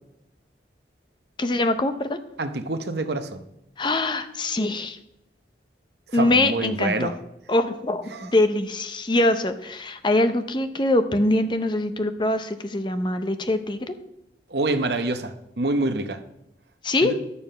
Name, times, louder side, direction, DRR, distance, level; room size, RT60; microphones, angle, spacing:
voice 1, 1.4-2.2 3.8-5.0 6.1-7.1 7.5-13.9 16.8-17.1, left 2 dB, 25° left, 9 dB, 0.7 m, -23 dB
voice 2, 2.4-3.4 6.1-7.2 8.1-8.3 14.5-16.2 17.0-17.2, right 2 dB, 65° right, 9 dB, 0.9 m, -26 dB
11.0 x 7.0 x 5.6 m, 0.83 s
head